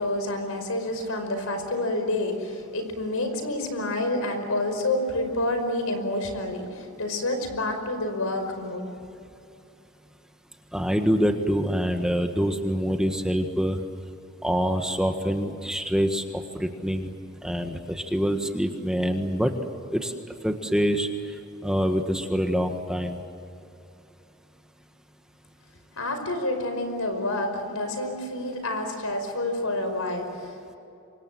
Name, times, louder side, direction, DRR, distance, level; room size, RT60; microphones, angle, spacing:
voice 1, 0.0-8.9 26.0-30.8, left 1 dB, 90° left, 6 dB, 5.3 m, -28 dB
voice 2, 10.7-13.8 14.4-17.1 17.4-19.5 19.9-20.1 20.4-21.1 21.6-23.2, equal, 5° right, 5 dB, 1.6 m, -25 dB
28.0 x 24.5 x 7.7 m, 2.7 s
head